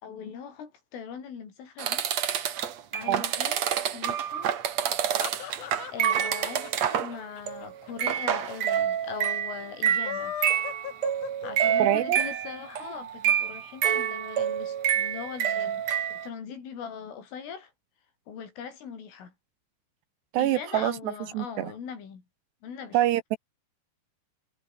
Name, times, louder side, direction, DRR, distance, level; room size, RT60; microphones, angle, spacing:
voice 1, 0.0-2.1 2.9-4.6 5.4-10.4 11.4-17.7 18.3-19.3 20.4-22.2 22.6-23.0, left 7 dB, 85° left, 7.6 m, -40 dB
sound 1, 1.8-7.2 7.5-7.7 8.0-16.3, right 9 dB, 55° right, 2.0 m, -27 dB
sound 2, 4.8-8.2 8.5-8.6 8.8-8.9 9.8-12.0, left 11 dB, 65° left, 2.1 m, -38 dB
voice 2, 11.8-12.2 20.3-20.9 21.3-21.7 22.9-23.4, right 13 dB, 70° right, 2.9 m, -25 dB
omnidirectional pair, 5.6 m